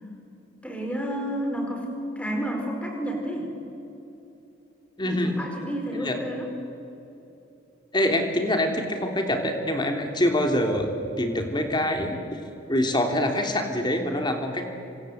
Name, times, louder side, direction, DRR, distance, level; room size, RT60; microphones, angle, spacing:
voice 1, 0.6-1.9 2.2-3.5 5.0-6.5, equal, 5° left, 2 dB, 4.6 m, -30 dB
voice 2, 5.0-5.3 5.9-6.1 7.9-10.9 11.2-12.4 12.7-14.6, left 1 dB, 25° left, 4 dB, 3.2 m, -25 dB
28.0 x 25.5 x 8.0 m, 3.0 s
head